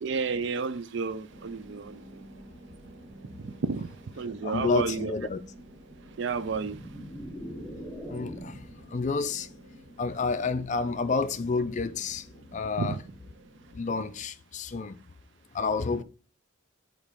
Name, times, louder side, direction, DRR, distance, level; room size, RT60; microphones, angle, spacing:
voice 1, 0.0-2.2 3.4-3.9 4.2-5.2 6.2-6.8 12.7-13.0, right 5 dB, 55° right, 0.4 m, -31 dB
sound 1, 1.3-14.2, right 1 dB, 40° right, 1.3 m, -51 dB
voice 2, 4.4-5.4 8.1-8.6 8.9-9.5 10.0-12.2 12.5-12.9 13.7-15.0 15.5-16.0, left 4 dB, 35° left, 0.4 m, -29 dB
sound 2, 6.3-8.8, equal, 5° right, 1.0 m, -41 dB
5.2 x 3.9 x 5.1 m
head